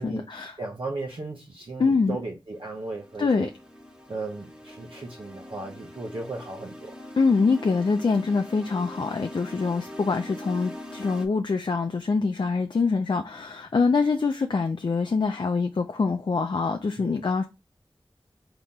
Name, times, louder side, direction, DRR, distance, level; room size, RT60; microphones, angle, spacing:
voice 1, 0.0-0.6 1.8-2.2 3.2-3.5 7.2-17.5, left 4 dB, 60° left, 0.5 m, -24 dB
voice 2, 0.6-3.5 4.1-6.9 17.0-17.3, right 2 dB, 65° right, 0.9 m, -36 dB
sound 1, 2.5-11.3, equal, 10° right, 1.2 m, -42 dB
3.6 x 2.9 x 4.1 m
wide cardioid pair, 45°, 9 cm